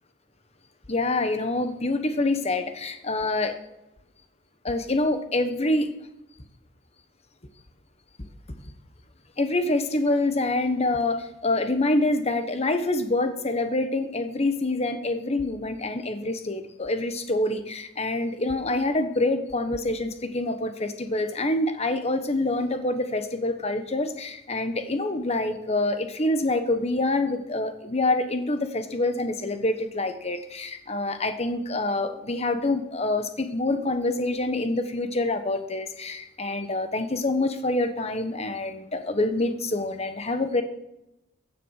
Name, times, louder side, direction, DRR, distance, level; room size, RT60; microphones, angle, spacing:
voice 1, 0.9-3.5 4.6-5.9 9.4-40.6, left 2 dB, 35° left, 8 dB, 1.2 m, -26 dB
15.5 x 9.4 x 6.5 m, 0.88 s
head